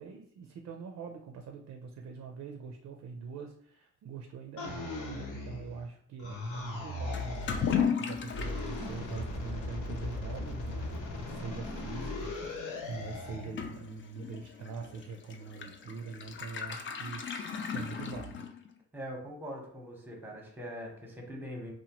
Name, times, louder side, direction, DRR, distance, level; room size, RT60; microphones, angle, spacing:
voice 1, 0.0-10.9 11.2-18.5, right 5 dB, 60° right, 3 dB, 0.5 m, -43 dB
sound 1, 4.6-5.9 6.2-7.9 8.3-13.5, left 2 dB, 75° left, 1.0 m, -38 dB
Toilet flush / Liquid, 7.1-18.8, left 7 dB, 40° left, 0.4 m, -37 dB
voice 2, 18.9-21.7, equal, 5° right, 0 dB, 0.9 m, -42 dB
2.8 x 2.1 x 2.9 m, 0.64 s
cardioid pair, 90°, 30 cm